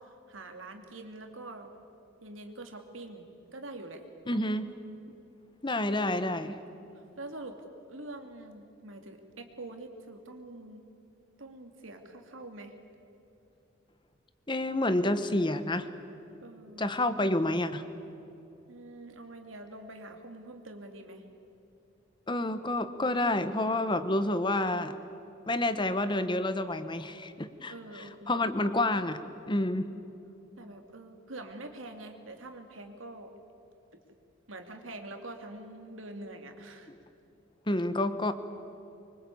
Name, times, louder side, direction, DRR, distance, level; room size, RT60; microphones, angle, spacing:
voice 1, 0.0-1.7 2.2-4.4 6.8-6.9 7.2-10.9 11.4-12.7 16.4-16.9 18.7-21.2 27.7-28.5 29.9-30.2 30.6-33.3 33.9-34.0 34.5-36.9, right 2 dB, 90° right, 5 dB, 2.8 m, -45 dB
voice 2, 4.3-4.7 5.6-6.6 14.5-15.9 16.8-17.8 22.3-24.9 25.5-29.2 29.5-29.9 37.7-38.3, left 1 dB, 25° left, 11 dB, 1.1 m, -29 dB
25.0 x 24.0 x 8.6 m, 2.8 s
head